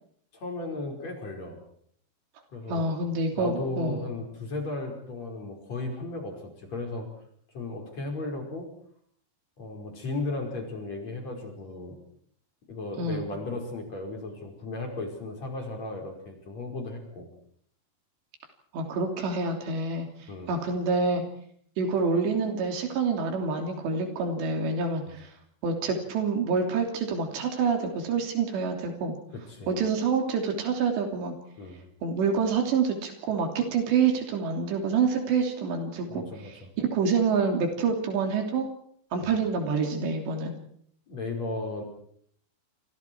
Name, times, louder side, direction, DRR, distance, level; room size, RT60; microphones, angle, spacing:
voice 1, 0.3-1.6 2.5-2.9 3.3-7.1 7.5-8.7 9.6-12.0 12.7-17.3 20.3-20.6 25.1-25.2 29.5-29.7 31.6-31.8 36.1-36.7 39.2-39.3 41.1-41.8, left 2 dB, 40° left, 2 dB, 6.0 m, -35 dB
voice 2, 2.7-4.1 13.0-13.2 18.7-20.1 20.5-21.2 21.8-25.3 25.6-29.1 29.7-31.3 32.0-38.7 39.1-40.5, right 5 dB, 90° right, 3 dB, 5.3 m, -27 dB
28.5 x 27.5 x 4.7 m, 0.64 s
omnidirectional pair, 4.8 m